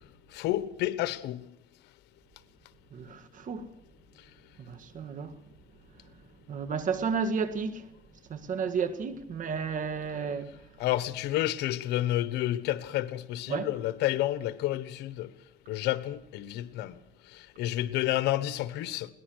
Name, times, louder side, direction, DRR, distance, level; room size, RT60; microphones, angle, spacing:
voice 1, 0.3-1.4 10.8-15.3 15.7-16.9 17.6-19.1, left 14 dB, 85° left, 1.2 m, -30 dB
voice 2, 2.9-3.7 4.6-5.3 6.5-7.9 8.3-10.5 13.5-13.7, right 5 dB, 50° right, 2.0 m, -32 dB
22.5 x 18.5 x 6.4 m
cardioid pair, 110°, 17 cm